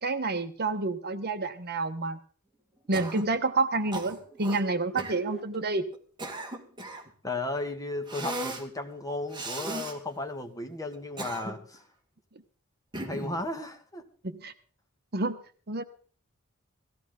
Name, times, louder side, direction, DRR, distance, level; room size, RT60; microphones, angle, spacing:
voice 1, 0.0-2.2 2.9-5.9 14.2-14.5 15.1-15.4 15.7-15.8, right 3 dB, 50° right, 9 dB, 1.1 m, -29 dB
sound 1, 2.5-5.7, right 4 dB, ahead, 2.7 m, -46 dB
Cough, 2.9-3.4 3.9-4.6 5.0-5.2 5.9-7.1 8.1-8.7 9.3-10.0 10.9-11.8 12.9-13.4, right 1 dB, 20° right, 1.9 m, -36 dB
voice 2, 7.2-11.8 13.0-14.0, left 2 dB, 15° left, 5 dB, 1.6 m, -35 dB
18.0 x 15.5 x 3.9 m, 0.42 s
head